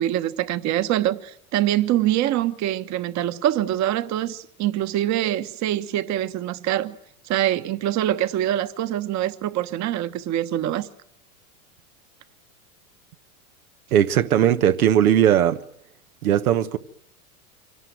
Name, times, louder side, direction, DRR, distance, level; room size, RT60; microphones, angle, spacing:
voice 1, 0.0-7.0 7.3-10.9, right 12 dB, 40° right, 1.3 m, -24 dB
voice 2, 13.9-15.6 16.2-16.8, right 10 dB, 85° right, 1.2 m, -18 dB
25.0 x 18.0 x 9.3 m
hypercardioid pair, 110°, 42 cm